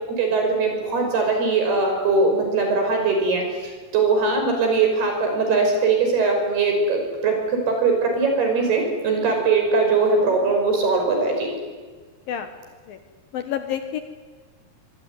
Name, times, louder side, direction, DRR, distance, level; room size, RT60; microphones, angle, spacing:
voice 1, 0.1-3.4 3.9-11.5, right 4 dB, 65° right, 3 dB, 7.6 m, -21 dB
voice 2, 13.3-14.0, left 9 dB, 65° left, 8 dB, 2.6 m, -28 dB
25.0 x 23.0 x 9.7 m, 1.4 s
omnidirectional pair, 5.0 m